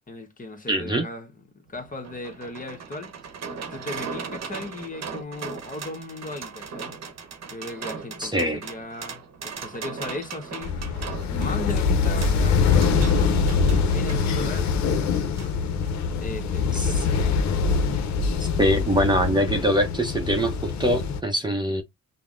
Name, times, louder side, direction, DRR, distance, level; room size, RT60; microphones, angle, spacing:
voice 1, 0.1-3.1 3.6-7.0 7.5-15.2 15.8-17.3, left 2 dB, 25° left, 1.0 m, -37 dB
voice 2, 0.7-1.1 8.2-8.6 16.7-16.9 18.4-21.8, equal, 15° right, 0.7 m, -23 dB
sound 1, 1.7-14.2 15.4-15.5 15.9-16.0, right 5 dB, 60° right, 0.9 m, -38 dB
sound 2, 10.6-21.2, left 5 dB, 70° left, 0.6 m, -23 dB
5.4 x 2.1 x 2.5 m
cardioid pair, 90°, 30 cm